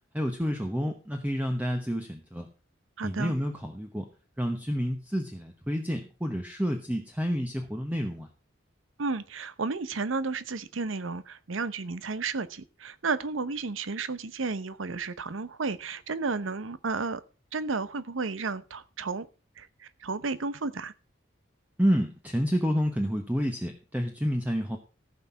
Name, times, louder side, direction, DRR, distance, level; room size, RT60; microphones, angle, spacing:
voice 1, 0.1-2.5 3.0-4.1 4.4-8.3 21.8-24.8, equal, 10° right, 1.0 m, -29 dB
voice 2, 3.0-3.3 9.0-17.2 17.5-19.3 19.6-20.9, right 4 dB, 80° right, 0.8 m, -32 dB
15.0 x 6.0 x 5.7 m
head